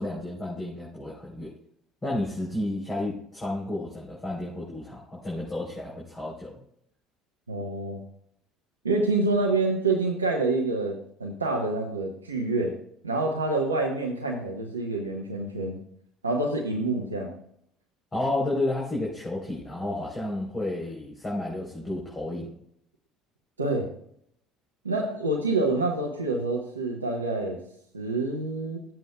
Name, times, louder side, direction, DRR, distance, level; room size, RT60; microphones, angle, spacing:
voice 1, 0.0-1.5 2.0-6.6 18.1-22.5, left 1 dB, 20° left, -5 dB, 3.7 m, -31 dB
voice 2, 7.5-8.0 8.8-12.8 13.0-15.8 16.2-17.3 23.6-23.9 24.8-27.6 27.9-28.8, right 2 dB, 85° right, 0 dB, 0.9 m, -27 dB
13.5 x 8.0 x 2.3 m, 0.68 s
figure-of-eight pair, 60°, 0 cm